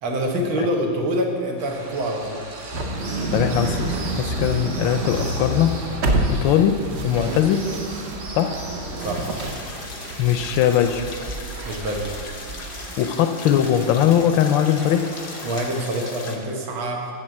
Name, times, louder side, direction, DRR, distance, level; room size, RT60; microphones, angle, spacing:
voice 1, 0.0-2.4 6.1-6.5 9.0-9.3 11.6-12.2 15.4-17.1, right 1 dB, 85° right, 1 dB, 2.0 m, -26 dB
sound 1, 1.6-15.9, right 2 dB, 45° right, 1.4 m, -40 dB
sound 2, 2.7-13.0, right 2 dB, 65° right, 0.6 m, -29 dB
voice 2, 3.3-5.8 6.3-6.7 7.0-7.7 8.4-8.6 10.2-11.1 13.0-15.2, left 10 dB, 75° left, 8 dB, 1.3 m, -20 dB
sound 3, 9.0-16.4, left 3 dB, 55° left, 0.6 m, -38 dB
11.5 x 4.0 x 7.8 m, 2.2 s
omnidirectional pair, 2.2 m